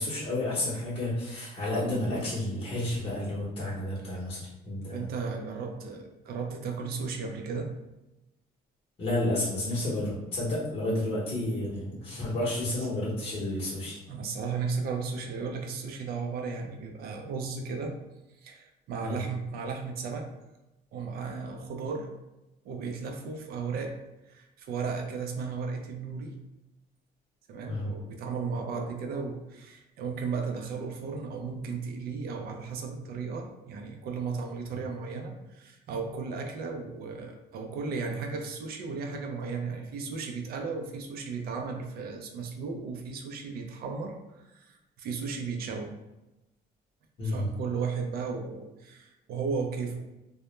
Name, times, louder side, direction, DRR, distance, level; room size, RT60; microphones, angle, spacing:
voice 1, 0.0-5.1 9.0-14.0 19.0-19.2 27.6-27.9 47.2-47.5, left 1 dB, 35° left, -8 dB, 0.8 m, -31 dB
voice 2, 4.9-7.7 14.1-18.0 18.4-20.3 20.9-22.1 22.6-24.0 24.3-26.4 27.5-45.9 47.2-50.0, right 5 dB, 65° right, 3 dB, 0.4 m, -35 dB
2.1 x 2.1 x 3.0 m, 0.98 s
cardioid pair, 110°, 17 cm